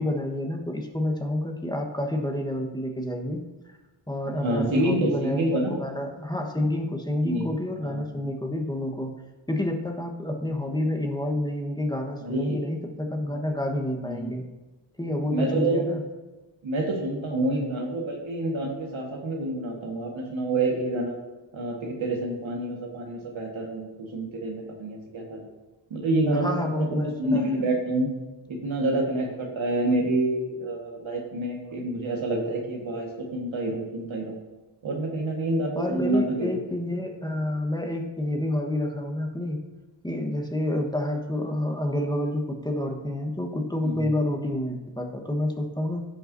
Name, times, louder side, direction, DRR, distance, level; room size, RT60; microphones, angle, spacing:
voice 1, 0.0-3.4 4.1-9.1 9.5-14.4 15.0-16.0 26.3-27.4 35.7-39.6 40.0-46.1, left 1 dB, 10° left, 2 dB, 1.2 m, -29 dB
voice 2, 4.3-5.7 7.2-7.5 7.8-8.1 12.2-12.6 14.0-14.4 15.3-15.8 16.6-21.1 21.5-25.5 25.9-28.1 28.5-34.4 34.8-36.5 43.8-44.1, right 1 dB, 85° right, 0 dB, 1.7 m, -28 dB
15.5 x 5.6 x 2.7 m, 1.2 s
cardioid pair, 60°, 46 cm